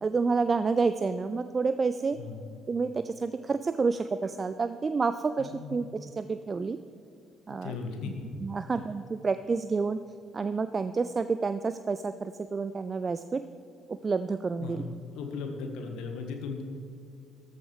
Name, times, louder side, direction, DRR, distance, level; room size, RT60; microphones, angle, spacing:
voice 1, 0.0-2.2 2.7-6.8 7.5-7.8 8.4-10.0 10.3-13.4 13.9-14.9, right 4 dB, 30° right, 12 dB, 0.4 m, -29 dB
voice 2, 2.2-2.5 5.4-5.7 7.6-8.4 8.7-8.9 14.6-14.9 15.1-16.6, left 4 dB, 60° left, 4 dB, 1.3 m, -37 dB
14.0 x 12.5 x 3.3 m, 2.6 s
figure-of-eight pair, 45°, 0 cm